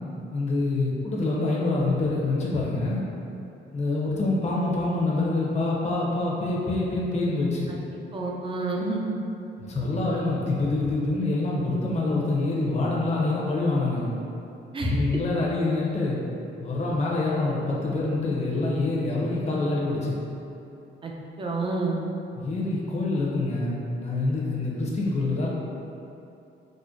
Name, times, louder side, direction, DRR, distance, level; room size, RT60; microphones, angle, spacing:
voice 1, 0.3-3.0 3.7-7.7 9.6-14.1 14.8-16.2 16.6-20.2 22.4-25.5, left 2 dB, 35° left, -5 dB, 0.7 m, -26 dB
voice 2, 8.1-9.0 14.7-15.1 21.0-21.1 21.4-22.0, right 2 dB, 25° right, -1 dB, 0.5 m, -28 dB
4.9 x 2.1 x 2.5 m, 2.8 s
cardioid pair, 90°, 20 cm